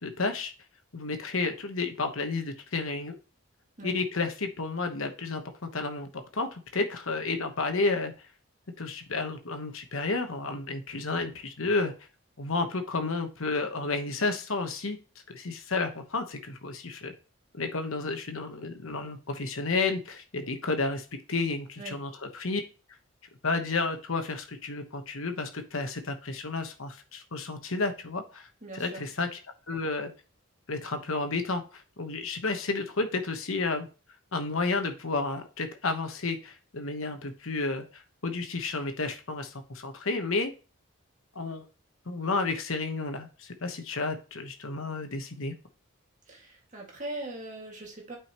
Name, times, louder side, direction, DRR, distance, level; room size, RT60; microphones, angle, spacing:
voice 1, 0.0-0.5 0.9-3.2 3.8-8.1 8.8-11.9 12.4-15.0 15.3-17.1 17.6-22.6 23.4-29.4 29.7-30.1 30.7-33.9 34.3-40.5 41.3-41.7 42.1-45.5, left 3 dB, 75° left, 6 dB, 1.1 m, -31 dB
voice 2, 28.6-29.1 46.3-48.2, right 2 dB, 35° right, 0 dB, 2.0 m, -40 dB
8.9 x 5.0 x 2.9 m, 0.34 s
head